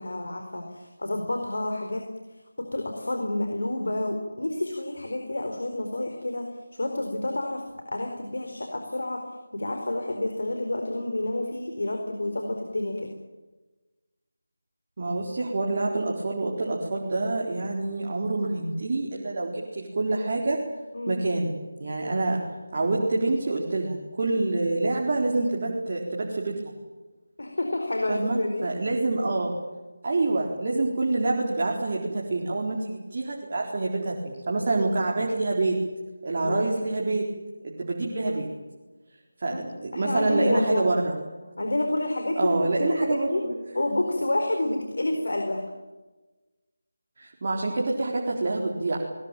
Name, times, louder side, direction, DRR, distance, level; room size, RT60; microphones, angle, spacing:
voice 1, 0.0-2.1 2.6-7.6 7.9-9.2 9.5-13.1 20.9-21.2 27.4-28.7 36.4-36.7 39.5-40.9 41.6-43.4 43.7-45.6, left 1 dB, 70° left, 4 dB, 4.4 m, -29 dB
voice 2, 15.0-20.6 21.1-21.5 21.8-22.4 22.7-26.7 28.1-29.6 30.0-35.8 36.2-37.3 37.6-38.5 39.4-41.1 42.4-43.6 47.2-49.0, right 2 dB, 40° right, -2 dB, 4.2 m, -27 dB
24.0 x 21.0 x 9.1 m, 1.2 s
figure-of-eight pair, 160°, 0 cm